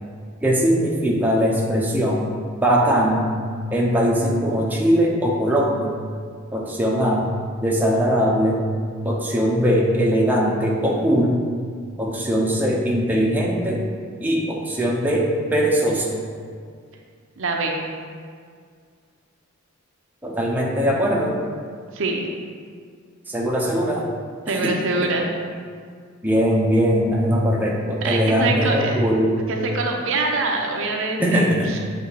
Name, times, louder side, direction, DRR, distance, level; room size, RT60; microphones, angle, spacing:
voice 1, 0.4-2.3 2.6-3.3 3.7-5.9 6.5-7.3 7.6-8.6 9.0-11.4 12.0-13.9 14.2-16.2 20.2-21.4 23.3-24.1 24.5-25.1 26.2-29.3 31.2-31.7, equal, 10° right, -3 dB, 0.7 m, -20 dB
voice 2, 17.4-17.8 21.9-22.3 24.5-25.3 28.0-29.0 29.5-31.8, right 3 dB, 70° right, 1 dB, 0.7 m, -24 dB
7.5 x 3.4 x 4.1 m, 2.1 s
head